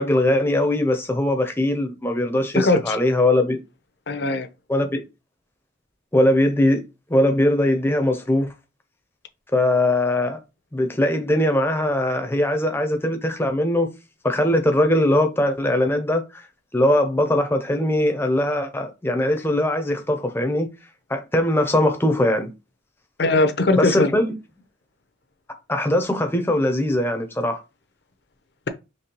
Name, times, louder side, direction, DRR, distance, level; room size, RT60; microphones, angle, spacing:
voice 1, 0.0-3.6 4.7-5.0 6.1-6.8 7.1-8.5 9.5-10.4 10.7-13.9 14.2-16.5 16.7-20.7 21.1-22.5 23.8-24.3 25.7-27.6, left 1 dB, 10° left, 0.6 m, -21 dB
voice 2, 2.5-3.0 4.1-4.5 23.2-24.1, left 2 dB, 60° left, 0.6 m, -19 dB
5.2 x 3.2 x 2.9 m
head